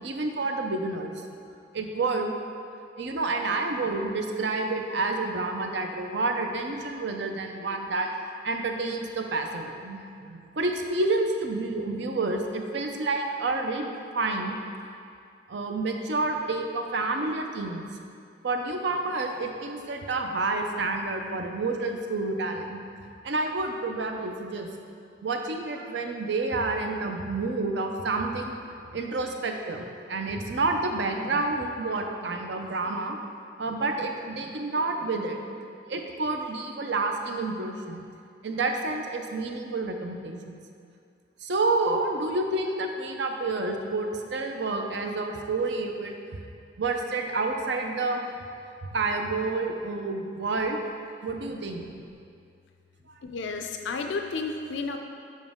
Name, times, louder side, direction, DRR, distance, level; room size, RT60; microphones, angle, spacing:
voice 1, 0.0-1.1 1.7-2.3 3.0-8.1 8.4-13.9 14.1-14.6 15.5-17.8 18.4-22.8 23.2-24.7 25.2-28.5 28.9-33.2 33.6-38.0 38.4-40.6 41.4-46.1 46.8-48.3 48.9-50.8 51.2-51.8, right 3 dB, 70° right, 4 dB, 0.6 m, -29 dB
voice 2, 51.6-52.1 53.2-55.0, left 4 dB, 80° left, 5 dB, 0.4 m, -33 dB
7.3 x 5.1 x 3.6 m, 2.4 s
head